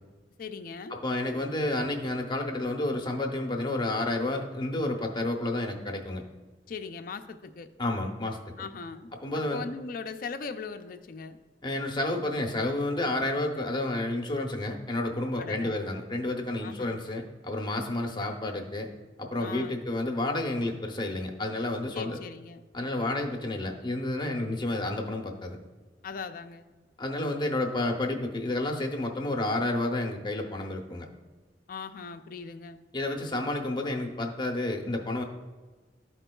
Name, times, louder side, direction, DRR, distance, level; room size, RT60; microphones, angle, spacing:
voice 1, 0.4-1.0 6.7-7.7 8.6-11.4 15.4-15.8 16.6-17.0 19.4-19.8 21.9-22.6 26.0-26.6 31.7-32.8, left 5 dB, 55° left, 8 dB, 0.4 m, -39 dB
voice 2, 0.9-6.2 7.8-8.4 9.2-9.6 11.6-18.9 19.2-22.2 22.7-25.6 27.0-31.1 32.9-35.2, left 2 dB, 25° left, 2 dB, 0.8 m, -30 dB
12.5 x 4.4 x 2.3 m, 1.3 s
head